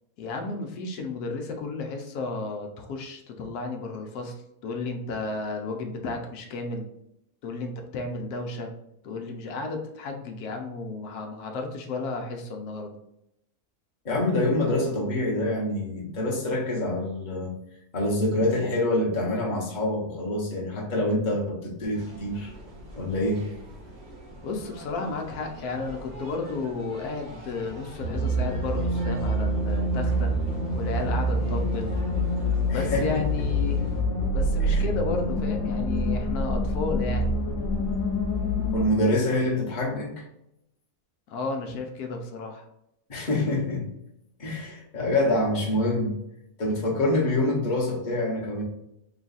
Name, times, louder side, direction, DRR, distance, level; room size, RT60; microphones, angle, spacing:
voice 1, 0.2-6.9 7.4-8.7 9.0-12.9 24.4-30.3 30.7-32.0 32.7-33.8 34.3-37.3 41.3-42.7, left 3 dB, 90° left, 3 dB, 1.2 m, -33 dB
voice 2, 14.0-17.5 17.9-22.5 22.9-23.5 32.7-33.2 34.6-34.8 38.7-40.2 43.1-43.8 44.4-46.1 46.6-48.6, left 1 dB, 35° left, -3 dB, 1.0 m, -26 dB
sound 1, 21.9-34.0, right 1 dB, 40° right, 0.7 m, -44 dB
sound 2, 28.0-38.9, equal, 60° left, 1.3 m, -26 dB
3.9 x 2.4 x 3.9 m, 0.81 s
omnidirectional pair, 1.6 m